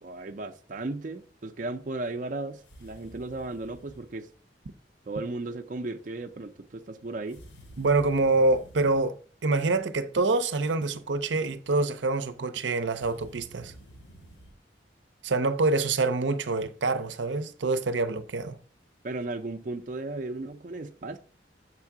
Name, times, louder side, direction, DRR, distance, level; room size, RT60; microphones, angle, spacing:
voice 1, 0.0-4.3 5.1-7.4 19.0-21.2, right 2 dB, 45° right, 0.5 m, -35 dB
sound 1, 2.6-4.1 7.3-9.1 12.9-14.6, right 1 dB, 90° left, 1.8 m, -50 dB
voice 2, 7.8-13.7 15.2-18.6, right 3 dB, 85° right, 0.6 m, -26 dB
7.4 x 3.6 x 5.9 m
head